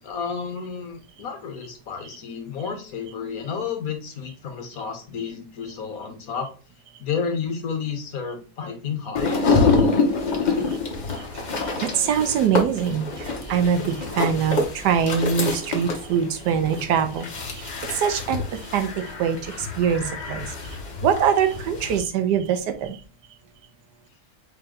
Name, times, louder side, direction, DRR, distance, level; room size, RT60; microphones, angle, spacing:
voice 1, 0.0-6.5 7.0-10.9, left 6 dB, 65° left, 5 dB, 1.4 m, -32 dB
sound 1, 9.1-22.0, left 3 dB, 35° left, 0.8 m, -26 dB
voice 2, 11.3-20.5 21.0-23.0, right 7 dB, 90° right, 9 dB, 1.3 m, -24 dB
4.9 x 2.9 x 3.6 m, 0.36 s
omnidirectional pair, 1.7 m